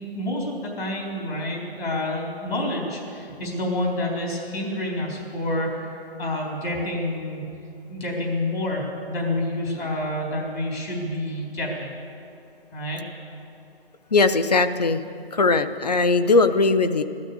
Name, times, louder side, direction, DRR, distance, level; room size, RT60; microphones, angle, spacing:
voice 1, 0.0-7.6 7.9-12.0 12.7-13.0, left 1 dB, 75° left, -1 dB, 3.9 m, -28 dB
voice 2, 14.1-15.0 15.3-17.0, left 3 dB, 40° left, 11 dB, 0.6 m, -19 dB
15.0 x 13.0 x 6.8 m, 2.7 s
hypercardioid pair, 175°, 31 cm